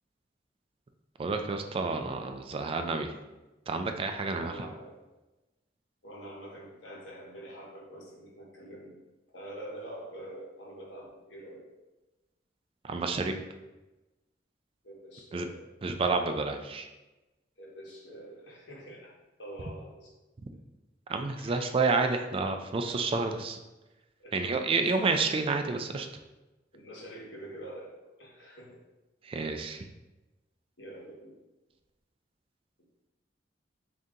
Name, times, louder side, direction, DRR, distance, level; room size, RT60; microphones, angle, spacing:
voice 1, 1.2-3.1 3.7-4.7 12.8-13.3 15.3-15.5 15.8-16.9 21.1-23.6 24.3-26.1 29.2-29.9, right 3 dB, 30° right, 6 dB, 0.3 m, -29 dB
voice 2, 4.3-5.0 6.0-9.0 9.3-11.6 14.8-15.7 17.6-19.1 19.4-20.1 21.4-21.7 24.2-24.8 26.7-27.9 28.2-28.8 30.8-31.3, right 1 dB, 85° left, -4 dB, 1.2 m, -45 dB
3.6 x 2.7 x 3.8 m, 1.1 s
head